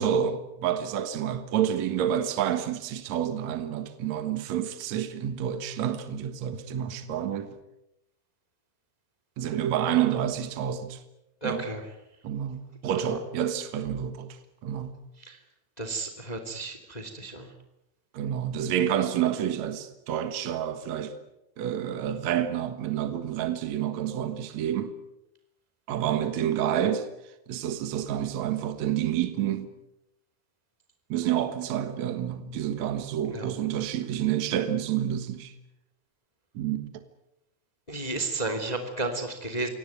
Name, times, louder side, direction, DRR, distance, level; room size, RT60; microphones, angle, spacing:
voice 1, 0.0-7.6 9.4-11.0 11.4-11.6 12.2-14.4 14.6-14.9 18.1-21.1 21.6-24.9 25.9-27.1 27.5-29.7 31.1-35.5 36.5-37.0, right 10 dB, 70° right, 1.6 m, -29 dB
voice 2, 11.4-11.8 13.0-13.2 15.2-15.4 15.8-17.5 33.3-33.5 37.9-39.7, right 2 dB, 15° left, 1.5 m, -33 dB
26.0 x 18.0 x 9.4 m
omnidirectional pair, 5.5 m